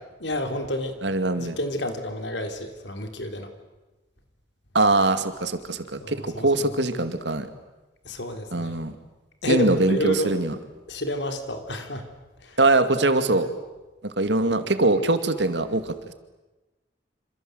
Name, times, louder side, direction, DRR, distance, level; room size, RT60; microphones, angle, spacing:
voice 1, 0.2-1.0 1.4-3.5 6.0-6.6 8.1-8.7 9.4-10.3 10.9-12.1 12.4-12.6, left 1 dB, 80° left, 7 dB, 3.6 m, -29 dB
voice 2, 1.0-1.6 4.7-7.5 8.5-8.9 9.5-10.6 12.6-13.5 14.0-15.9, right 2 dB, 75° right, 9 dB, 2.4 m, -22 dB
27.5 x 27.0 x 8.0 m, 1.1 s
head